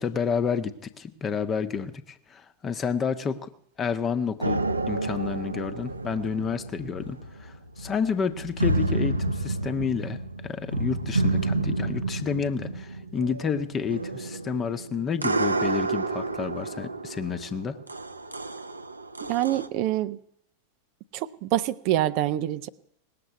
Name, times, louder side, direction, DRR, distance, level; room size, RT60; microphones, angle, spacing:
voice 1, 0.0-3.5 3.8-10.2 10.4-17.8, left 6 dB, 25° left, 10 dB, 1.0 m, -30 dB
sound 1, 4.4-19.7, right 2 dB, 80° right, 0.8 m, -30 dB
voice 2, 19.2-20.2 21.1-22.7, right 13 dB, 45° right, 13 dB, 0.7 m, -26 dB
18.5 x 7.7 x 9.3 m, 0.72 s
figure-of-eight pair, 90°, 0 cm